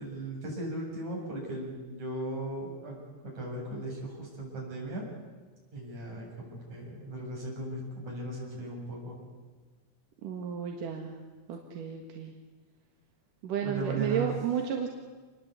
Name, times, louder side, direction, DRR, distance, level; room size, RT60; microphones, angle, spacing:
voice 1, 0.0-5.1 5.7-9.2 13.6-14.3, right 2 dB, 60° right, -2 dB, 8.9 m, -37 dB
voice 2, 10.2-11.2 11.5-12.3 13.4-14.9, right 7 dB, 90° right, 2 dB, 3.3 m, -32 dB
27.5 x 21.0 x 8.4 m, 1.3 s
omnidirectional pair, 3.6 m